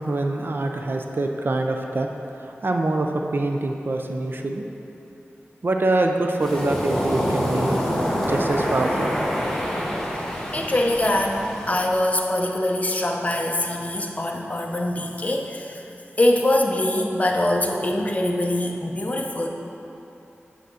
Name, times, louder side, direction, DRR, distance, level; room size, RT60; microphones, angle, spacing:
voice 1, 0.1-2.1 2.4-4.6 5.6-7.9 8.3-9.2, right 2 dB, 55° right, 3 dB, 0.5 m, -24 dB
Waves surf, 6.4-11.9, equal, 10° left, 1.2 m, -26 dB
voice 2, 10.1-15.8 16.2-19.5, left 1 dB, 35° left, 1 dB, 0.8 m, -23 dB
8.1 x 3.9 x 6.3 m, 2.9 s
wide cardioid pair, 70°, 4 cm